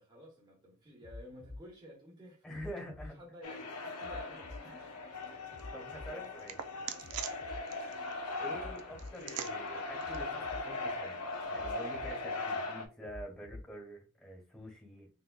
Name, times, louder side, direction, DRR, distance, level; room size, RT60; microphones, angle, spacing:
voice 1, 0.0-2.6 3.1-4.6 7.5-7.8, equal, 20° right, 1.0 m, -53 dB
sound 1, 1.0-1.6 2.5-3.1 4.0-4.6 5.5-6.1 7.0-7.6 8.5-9.1 10.0-10.6 11.5-12.1 13.0-13.6 14.5-14.6, left 2 dB, 30° left, 0.5 m, -47 dB
voice 2, 2.4-3.2 4.6-4.8 5.7-6.6 8.3-15.1, equal, ahead, 1.4 m, -47 dB
sound 2, 3.4-12.9, left 3 dB, 90° left, 0.7 m, -40 dB
sound 3, 4.6-11.4, right 9 dB, 75° right, 0.4 m, -48 dB
3.6 x 3.4 x 2.2 m
head